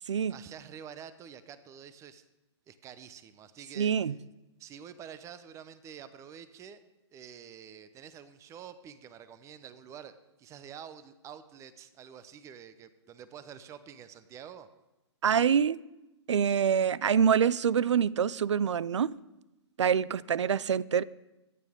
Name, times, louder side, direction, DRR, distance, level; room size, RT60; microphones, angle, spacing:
voice 1, 0.3-2.2 2.7-4.1 4.6-6.8 7.1-10.1 10.4-14.7, right 8 dB, 20° right, 0.8 m, -48 dB
voice 2, 3.8-4.1 15.2-15.8 16.3-19.1 19.8-21.0, right 7 dB, 80° right, 0.5 m, -25 dB
24.5 x 9.2 x 3.6 m
hypercardioid pair, 130°, 15 cm